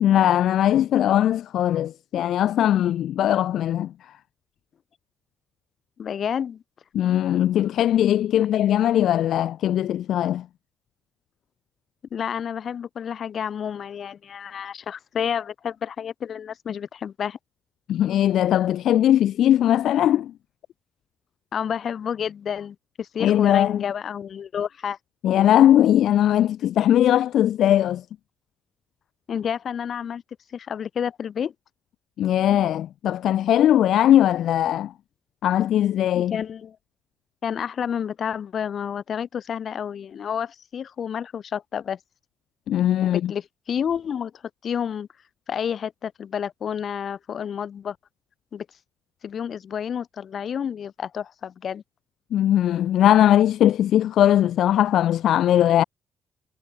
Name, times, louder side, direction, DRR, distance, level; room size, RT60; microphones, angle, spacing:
voice 1, 0.0-4.1 6.9-10.5 17.9-20.3 23.2-23.8 25.2-28.0 32.2-34.9 35.4-36.4 42.7-43.3 52.3-55.8, left 11 dB, 75° left, 0.4 m, -20 dB
voice 2, 6.0-6.6 12.1-17.4 21.5-25.0 29.3-30.2 30.5-31.5 36.1-36.8 37.4-42.0 43.0-44.3 44.6-45.1 45.5-48.0 48.5-48.7 49.2-51.8, left 8 dB, 55° left, 1.2 m, -30 dB
cardioid pair, 90°, 0 cm